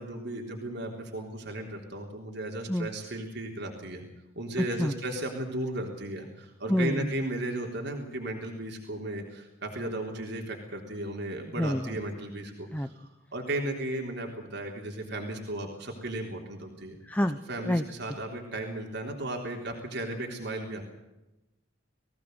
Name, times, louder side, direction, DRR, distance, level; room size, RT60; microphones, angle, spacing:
voice 1, 0.0-4.0 4.4-17.0 17.5-20.8, right 1 dB, 60° right, 1 dB, 3.5 m, -35 dB
voice 2, 6.7-7.1 11.6-11.9 12.7-12.9 17.1-17.4 17.7-17.8, equal, 10° left, 9 dB, 0.7 m, -27 dB
20.5 x 17.0 x 8.0 m, 0.97 s
head